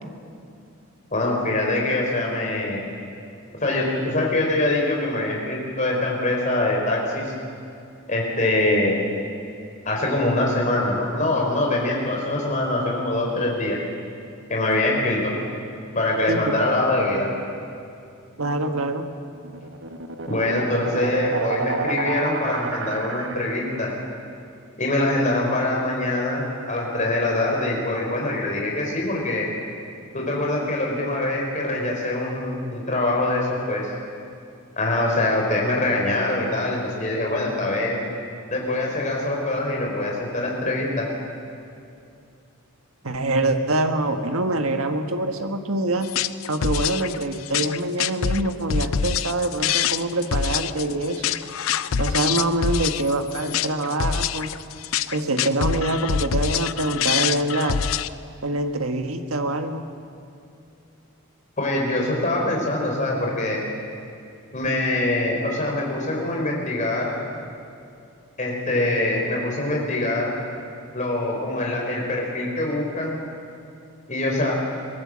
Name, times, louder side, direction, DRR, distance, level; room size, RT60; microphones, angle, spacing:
voice 1, 1.1-2.8 3.6-7.3 8.1-9.0 9.8-13.8 14.5-15.3 15.9-17.3 20.3-23.9 24.8-29.5 30.1-33.9 34.8-38.0 38.5-41.1 61.6-63.6 64.5-67.1 68.4-70.3 70.9-73.2 74.1-74.5, left 2 dB, 35° left, -1 dB, 4.2 m, -24 dB
voice 2, 18.4-19.0 43.0-46.1 46.5-51.4 52.0-54.5 55.1-57.8 58.4-59.9, right 2 dB, 90° right, 6 dB, 1.5 m, -25 dB
sound 1, 19.2-24.0, right 3 dB, 60° right, 1.3 m, -30 dB
sound 2, 46.0-58.1, left 8 dB, 75° left, 0.5 m, -25 dB
22.5 x 18.0 x 7.5 m, 2.5 s
head